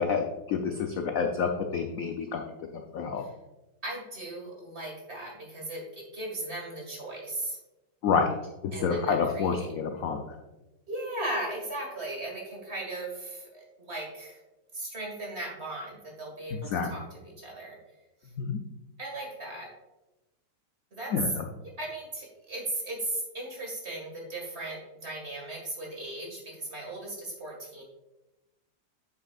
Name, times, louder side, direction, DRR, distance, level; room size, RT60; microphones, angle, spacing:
voice 1, 0.0-2.4 2.7-3.2 8.0-8.3 8.8-10.4 16.5-16.9 18.4-18.6 21.1-21.4, left 5 dB, 70° left, 4 dB, 0.8 m, -28 dB
voice 2, 3.8-7.6 8.7-9.7 10.9-14.4 14.7-16.6 16.9-17.8 19.0-19.7 20.9-21.1 21.8-27.8, right 1 dB, 35° right, -1 dB, 2.0 m, -37 dB
8.7 x 7.1 x 2.4 m, 1.0 s
omnidirectional pair, 2.1 m